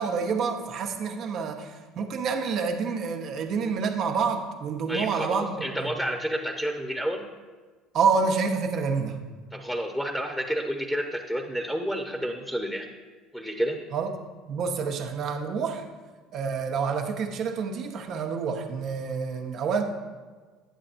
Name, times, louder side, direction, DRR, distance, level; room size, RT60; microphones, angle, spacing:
voice 1, 0.0-5.9 7.9-9.2 13.9-14.1 14.5-15.9 16.3-19.8, right 5 dB, 55° right, 4 dB, 1.0 m, -28 dB
voice 2, 4.9-7.2 9.5-12.9 13.3-13.8, equal, 5° right, 2 dB, 0.9 m, -30 dB
10.0 x 8.6 x 2.6 m, 1.4 s
hypercardioid pair, 65°, 0 cm